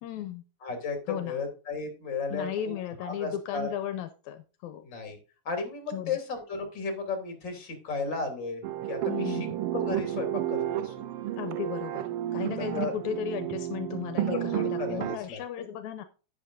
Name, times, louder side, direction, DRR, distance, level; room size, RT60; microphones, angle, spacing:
voice 1, 0.0-0.4 1.1-1.4 2.3-4.9 5.9-6.2 9.1-9.5 11.4-12.1 12.3-16.0, left 9 dB, 80° left, 10 dB, 2.1 m, -35 dB
voice 2, 0.6-2.7 3.0-3.7 4.8-5.2 5.4-9.5 9.7-11.1 12.6-12.9 14.3-15.6, left 4 dB, 40° left, 5 dB, 3.2 m, -34 dB
sound 1, 8.6-15.2, right 12 dB, 85° right, 1.2 m, -31 dB
11.0 x 9.3 x 2.5 m, 0.34 s
omnidirectional pair, 3.4 m